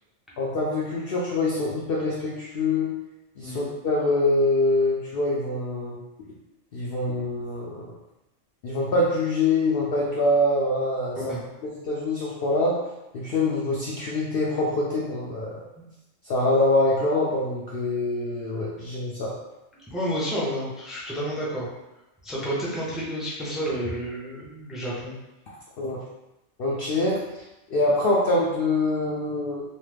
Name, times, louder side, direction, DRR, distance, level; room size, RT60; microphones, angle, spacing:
voice 1, 0.4-2.9 3.4-6.0 6.7-7.8 8.6-11.4 11.6-12.8 13.1-15.5 16.2-19.3 25.8-26.0 26.6-27.2 27.7-29.6, left 2 dB, 60° left, -5 dB, 0.6 m, -24 dB
voice 2, 19.9-21.7 22.2-25.1, equal, ahead, -6 dB, 0.5 m, -30 dB
3.1 x 2.1 x 3.2 m, 0.96 s
omnidirectional pair, 1.3 m